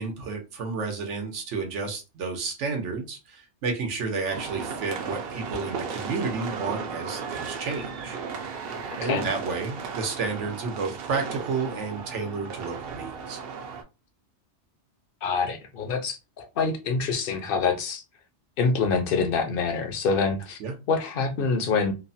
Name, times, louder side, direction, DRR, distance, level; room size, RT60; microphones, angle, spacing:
voice 1, 0.0-8.2 9.0-13.4 20.6-20.7, right 4 dB, 90° right, 3 dB, 1.1 m, -31 dB
sound 1, 4.3-13.8, right 5 dB, 65° right, 0.7 m, -35 dB
voice 2, 15.2-18.0 18.6-20.6 20.9-21.9, left 4 dB, 60° left, 6 dB, 0.7 m, -26 dB
3.0 x 2.0 x 2.6 m, 0.28 s
omnidirectional pair, 1.2 m